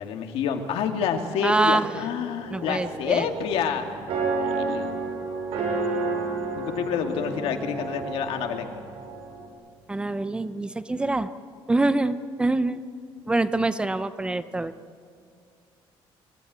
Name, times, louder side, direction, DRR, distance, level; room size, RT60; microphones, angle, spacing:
voice 1, 0.0-4.0 4.4-4.9 6.6-8.7, left 7 dB, 85° left, 4 dB, 2.3 m, -28 dB
voice 2, 1.4-1.9 2.5-3.3 9.9-11.3 11.7-12.8 13.3-14.7, right 2 dB, 10° right, 12 dB, 0.6 m, -25 dB
sound 1, 2.4-9.5, right 3 dB, 80° right, 5.4 m, -31 dB
26.0 x 16.0 x 9.5 m, 2.2 s
cardioid pair, 180°, 10 cm